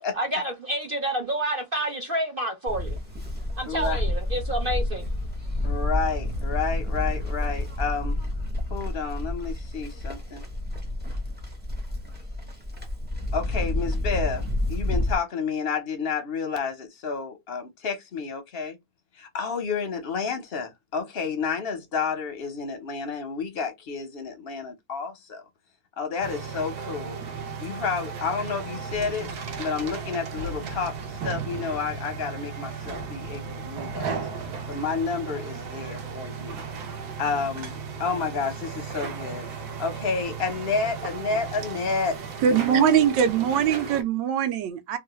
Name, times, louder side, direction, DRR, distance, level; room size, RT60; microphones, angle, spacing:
voice 1, 0.2-3.0 3.6-5.0, right 1 dB, 50° right, 0.6 m, -29 dB
Livestock farm animals working animals, 2.7-15.1, left 1 dB, 15° right, 0.3 m, -29 dB
voice 2, 3.7-4.0 5.6-8.1 8.7-10.4 13.3-18.8 19.2-25.4 26.0-27.2 27.6-29.3 29.6-30.9 31.2-34.3 34.7-36.6 37.2-42.2 42.5-43.1, left 5 dB, 50° left, 0.7 m, -30 dB
sound 1, 26.2-44.0, right 5 dB, 65° right, 1.2 m, -35 dB
voice 3, 42.4-45.0, right 8 dB, 85° right, 1.3 m, -22 dB
3.1 x 2.3 x 3.0 m
omnidirectional pair, 1.9 m